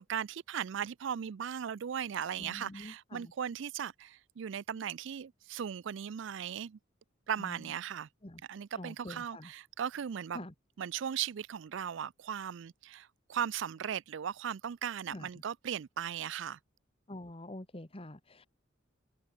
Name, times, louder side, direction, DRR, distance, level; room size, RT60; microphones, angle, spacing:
voice 1, 0.0-6.8 7.3-8.1 8.5-10.4 10.8-16.6, right 8 dB, 60° right, 0.4 m, -37 dB
voice 2, 2.4-3.3 7.4-7.7 8.2-8.4 8.8-9.5 10.3-10.5 15.1-15.3 17.1-18.5, left 1 dB, 30° left, 1.6 m, -46 dB
head